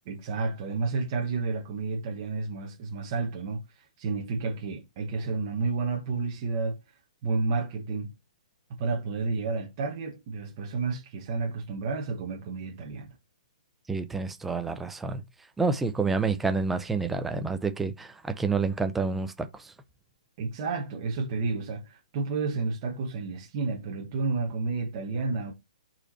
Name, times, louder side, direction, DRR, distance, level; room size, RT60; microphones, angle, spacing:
voice 1, 0.0-6.8 7.2-8.1 8.8-13.1 20.4-25.5, right 4 dB, 25° right, 1.2 m, -31 dB
voice 2, 13.9-15.2 15.6-19.5, right 4 dB, 5° right, 0.5 m, -28 dB
5.4 x 4.4 x 4.1 m
hypercardioid pair, 170°, 4 cm